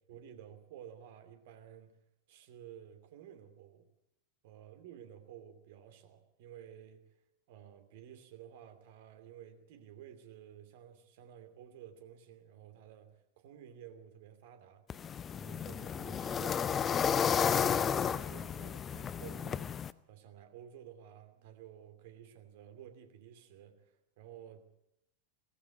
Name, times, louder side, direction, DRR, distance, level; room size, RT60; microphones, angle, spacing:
voice 1, 0.1-2.0 2.3-3.9 4.4-7.1 7.5-14.8 15.3-16.7 17.0-19.7 20.1-24.6, right 10 dB, 50° right, 8 dB, 2.6 m, -53 dB
sound 1, 14.9-19.9, left 7 dB, 25° left, 0.7 m, -32 dB
18.5 x 15.0 x 9.5 m, 0.83 s
figure-of-eight pair, 90°, 0 cm